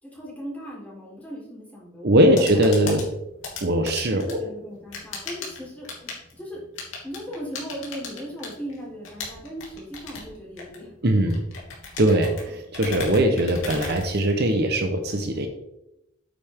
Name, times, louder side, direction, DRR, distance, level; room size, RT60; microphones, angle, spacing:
voice 1, 0.0-2.6 4.1-6.6 7.0-10.9, equal, 10° left, -6 dB, 4.0 m, -38 dB
voice 2, 2.0-3.1 3.6-4.4 11.0-11.4 12.0-15.5, right 1 dB, 55° right, 5 dB, 1.0 m, -21 dB
sound 1, 2.1-14.7, left 4 dB, 75° left, 3.0 m, -38 dB
9.0 x 8.4 x 3.7 m, 0.86 s
head